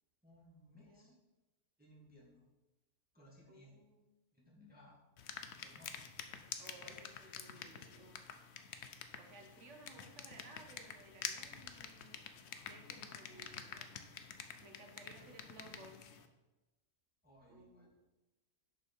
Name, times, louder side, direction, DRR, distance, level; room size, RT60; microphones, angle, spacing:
voice 1, 0.2-1.1 1.8-2.4 3.1-3.8 4.3-5.0 5.6-6.0 6.7-7.1 9.9-10.0 15.2-15.4 17.2-17.9, left 1 dB, 5° right, -3 dB, 1.2 m, -62 dB
voice 2, 0.7-1.1 3.5-4.0 6.6-8.2 9.2-12.2 12.7-14.0 14.6-16.0 17.5-17.9, right 2 dB, 55° right, 3 dB, 1.3 m, -58 dB
sound 1, 5.2-16.3, left 7 dB, 60° left, 0.8 m, -48 dB
6.8 x 5.5 x 5.2 m, 1.1 s
omnidirectional pair, 1.6 m